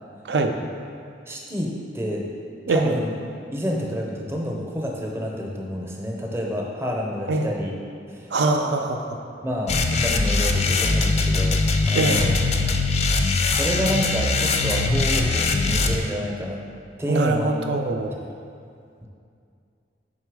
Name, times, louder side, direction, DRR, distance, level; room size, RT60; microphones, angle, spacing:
voice 1, 1.3-2.2 2.7-3.1 3.5-7.7 8.1-8.4 9.4-12.4 13.4-16.6 17.0-17.6 19.0-19.1, equal, 15° right, -1 dB, 0.6 m, -28 dB
voice 2, 8.3-9.2 11.9-12.3 17.1-18.1, right 3 dB, 70° right, 4 dB, 0.4 m, -23 dB
sound 1, 9.7-16.0, left 3 dB, 35° left, 0.3 m, -21 dB
5.5 x 3.9 x 4.7 m, 2.4 s
head